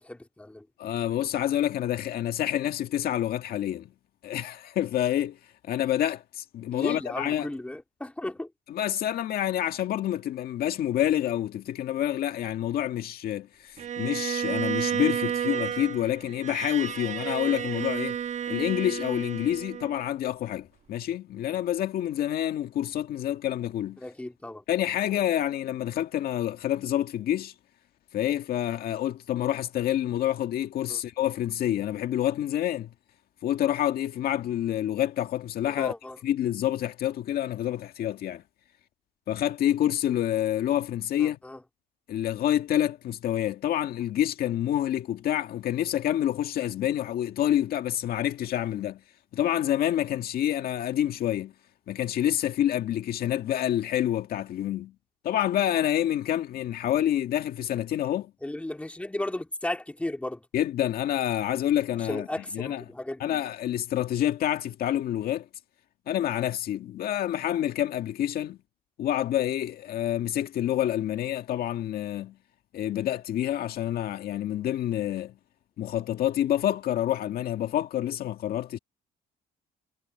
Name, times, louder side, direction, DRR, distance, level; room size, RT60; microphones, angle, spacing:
voice 1, 0.0-0.7 6.7-8.5 24.0-24.6 30.9-31.0 35.7-36.2 41.2-41.6 58.4-60.4 62.0-63.2, left 1 dB, 5° left, 2.8 m, -35 dB
voice 2, 0.8-3.9 4.2-5.4 5.7-7.5 8.7-18.2 18.5-24.0 24.7-27.5 28.1-32.9 33.4-35.9 36.2-38.4 39.3-41.4 42.1-49.0 49.3-51.5 51.9-54.9 55.2-58.3 60.5-62.3 62.5-62.8 63.2-65.5 66.1-68.6 69.0-72.3 72.7-75.3 75.8-78.8, left 11 dB, 65° left, 1.8 m, -28 dB
Bowed string instrument, 13.8-20.0, right 9 dB, 45° right, 1.4 m, -31 dB
cardioid pair, 110°, 17 cm